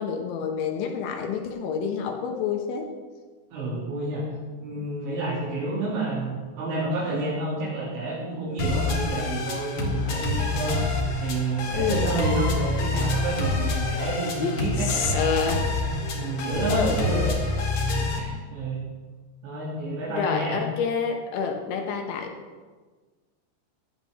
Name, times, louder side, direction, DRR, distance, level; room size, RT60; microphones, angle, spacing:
voice 1, 0.0-2.9 11.7-12.2 14.4-15.6 16.7-17.3 20.1-22.3, left 6 dB, 80° left, 3 dB, 3.2 m, -28 dB
voice 2, 3.5-4.3 4.6-10.8 11.2-15.1 15.8-17.3 17.8-18.9 19.4-20.6, right 2 dB, 70° right, -9 dB, 5.0 m, -29 dB
sound 1, 8.6-18.2, left 2 dB, 55° left, 2.1 m, -27 dB
15.5 x 11.5 x 3.5 m, 1.4 s
omnidirectional pair, 5.6 m